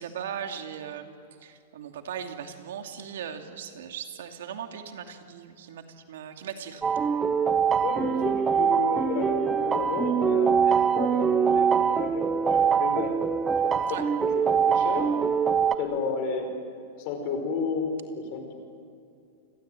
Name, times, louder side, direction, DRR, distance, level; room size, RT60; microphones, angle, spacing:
voice 1, 0.0-6.8 13.9-14.0, right 8 dB, 70° right, 5 dB, 2.7 m, -38 dB
sound 1, 6.8-15.7, right 7 dB, 10° right, 0.8 m, -23 dB
voice 2, 7.8-13.1 13.9-14.0 14.3-15.1 15.7-16.5 17.0-18.5, left 5 dB, 35° left, 5 dB, 5.0 m, -32 dB
29.5 x 22.5 x 9.1 m, 2.5 s
supercardioid pair, 175°, 0 cm